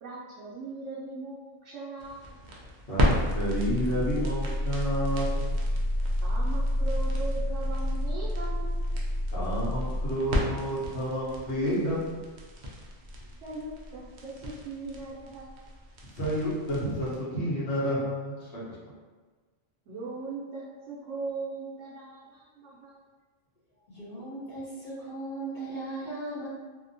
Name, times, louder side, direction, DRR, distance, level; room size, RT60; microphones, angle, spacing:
voice 1, 0.0-2.3 6.2-8.8 12.6-12.7 13.4-15.7 19.9-23.0, right 3 dB, 80° right, -7 dB, 0.9 m, -39 dB
sound 1, 2.0-17.2, left 1 dB, 60° right, 0.5 m, -30 dB
voice 2, 2.9-5.5 9.3-12.3 16.0-18.8, equal, 65° left, -8 dB, 1.1 m, -30 dB
voice 3, 23.9-26.5, right 2 dB, 45° left, -11 dB, 0.9 m, -37 dB
2.8 x 2.1 x 2.6 m, 1.4 s
omnidirectional pair, 1.3 m